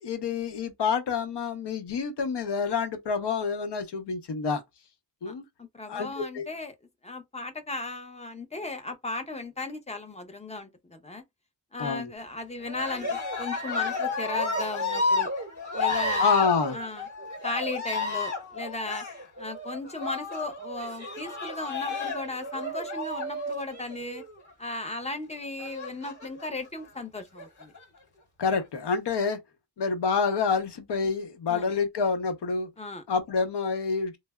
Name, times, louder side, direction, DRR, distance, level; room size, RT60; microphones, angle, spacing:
voice 1, 0.0-4.6 5.2-5.4 5.9-6.4 11.8-12.1 16.2-16.8 28.4-29.4 29.8-32.7 33.1-34.2, left 5 dB, 65° left, 0.8 m, -27 dB
voice 2, 5.6-6.8 7.0-11.2 11.7-15.3 15.7-16.5 16.7-17.1 17.4-19.0 19.4-24.2 24.6-27.7 31.5-31.7 32.8-33.0, left 2 dB, 15° left, 0.6 m, -36 dB
Cheering, 12.6-24.3 25.6-26.5 27.2-27.8, left 3 dB, 40° left, 2.1 m, -31 dB
3.2 x 2.0 x 2.2 m
cardioid pair, 75°, 44 cm